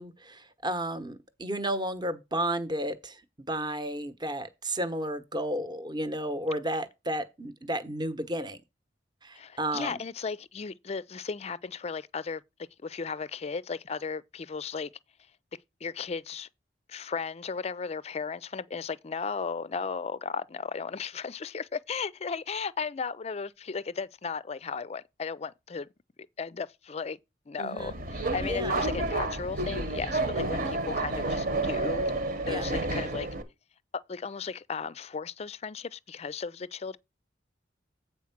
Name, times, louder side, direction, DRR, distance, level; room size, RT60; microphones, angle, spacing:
voice 1, 0.0-3.2 3.5-8.6 9.2-10.0 27.6-28.0 28.4-28.8 32.5-32.7, right 1 dB, 25° right, 1.0 m, -32 dB
voice 2, 9.3-12.4 12.8-14.9 15.8-16.5 16.9-25.9 26.4-27.2 27.5-32.1 32.5-33.3 33.9-37.0, left 5 dB, 35° left, 0.4 m, -35 dB
Subway metro underground, 27.8-33.4, right 2 dB, 55° right, 1.3 m, -30 dB
8.5 x 4.5 x 5.8 m
head